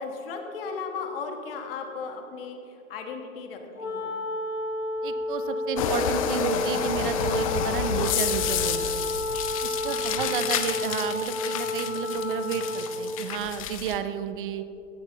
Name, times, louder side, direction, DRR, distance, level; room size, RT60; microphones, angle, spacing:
voice 1, 0.0-4.1 9.9-10.4, left 5 dB, 45° left, 4 dB, 1.8 m, -36 dB
Wind instrument woodwind instrument, 3.7-12.9, left 2 dB, 85° left, 2.8 m, -31 dB
voice 2, 5.0-9.1 9.6-14.6, right 8 dB, 40° right, 11 dB, 0.8 m, -32 dB
sound 1, 5.8-14.0, left 8 dB, 30° left, 0.5 m, -30 dB
17.0 x 10.5 x 3.2 m, 2.7 s
hypercardioid pair, 130°, 39 cm